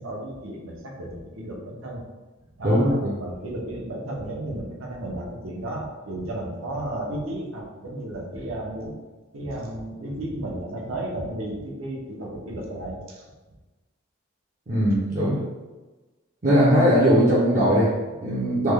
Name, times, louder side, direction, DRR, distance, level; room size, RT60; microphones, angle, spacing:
voice 1, 0.0-2.0 2.6-9.0 9.3-13.2, right 1 dB, 70° right, -1 dB, 0.7 m, -33 dB
voice 2, 2.6-3.1 14.7-15.4 16.4-18.7, equal, 35° right, -9 dB, 0.6 m, -20 dB
3.2 x 2.2 x 3.4 m, 1.2 s
head